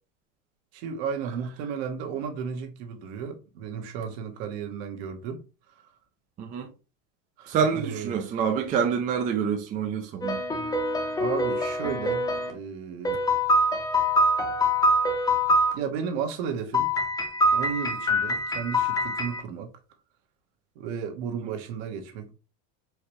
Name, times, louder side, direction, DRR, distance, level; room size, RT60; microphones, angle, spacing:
voice 1, 0.7-5.4 7.4-8.4 11.2-13.2 15.7-16.9 17.5-19.7 20.7-22.3, right 7 dB, 60° right, 1.2 m, -34 dB
voice 2, 6.4-6.7 7.5-10.4 21.4-21.5, right 7 dB, 20° right, 0.4 m, -27 dB
sound 1, 10.2-12.5 13.0-15.7 16.7-19.4, left 1 dB, 10° left, 0.7 m, -24 dB
4.7 x 3.3 x 3.0 m
supercardioid pair, 155°, 36 cm